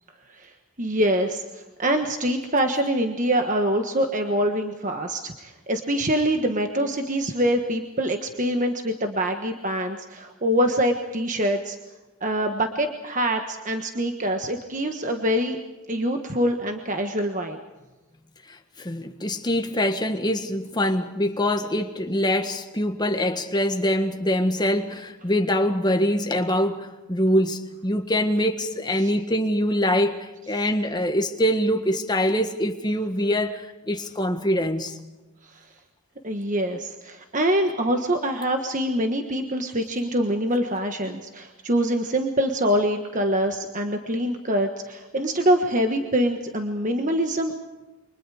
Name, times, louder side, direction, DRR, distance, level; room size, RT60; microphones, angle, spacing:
voice 1, 0.8-11.8 12.2-15.6 15.9-17.6 29.0-29.1 30.5-30.6 35.5-35.6 36.2-47.5, equal, 35° right, 1.4 m, -24 dB
voice 2, 18.5-35.0, equal, 20° left, 1.6 m, -24 dB
29.0 x 25.0 x 4.9 m
head